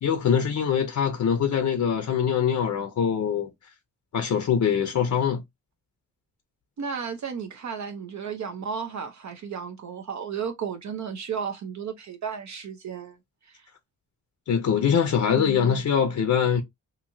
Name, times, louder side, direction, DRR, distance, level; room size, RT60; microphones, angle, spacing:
voice 1, 0.0-3.5 4.1-5.4 14.5-16.6, left 7 dB, 60° left, 0.6 m, -23 dB
voice 2, 6.8-13.2 13.5-13.7 15.3-15.8, right 6 dB, 55° right, 0.6 m, -34 dB
2.9 x 2.7 x 2.6 m
cardioid pair, 90°, 33 cm